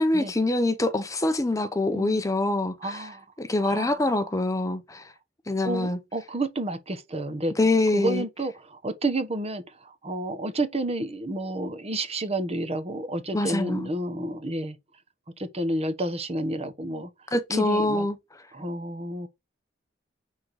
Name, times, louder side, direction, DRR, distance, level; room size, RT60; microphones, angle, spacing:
voice 1, 0.0-3.0 3.4-5.1 5.5-6.0 7.6-8.2 13.3-13.9 17.3-18.2, left 2 dB, 20° left, 0.7 m, -25 dB
voice 2, 2.8-3.2 3.6-4.1 5.6-7.5 7.9-14.8 15.4-17.1 17.5-18.1 18.5-19.3, right 1 dB, 35° right, 1.2 m, -30 dB
9.9 x 3.8 x 4.8 m
head